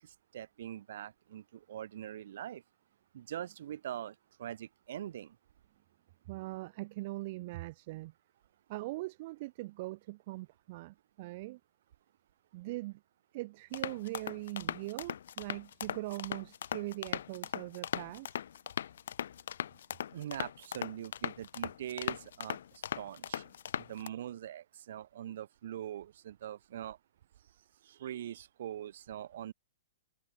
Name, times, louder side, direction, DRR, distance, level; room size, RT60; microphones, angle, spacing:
voice 1, 0.0-2.6 3.1-5.4 20.1-22.6 22.9-23.5 23.8-27.0 27.8-29.5, right 11 dB, 60° right, 3.2 m, -43 dB
voice 2, 6.3-8.1 8.7-11.6 12.5-13.0 13.3-18.3, right 20 dB, 45° right, 0.8 m, -41 dB
sound 1, 13.7-24.1, left 9 dB, 70° left, 0.7 m, -39 dB
hypercardioid pair, 130°, 0 cm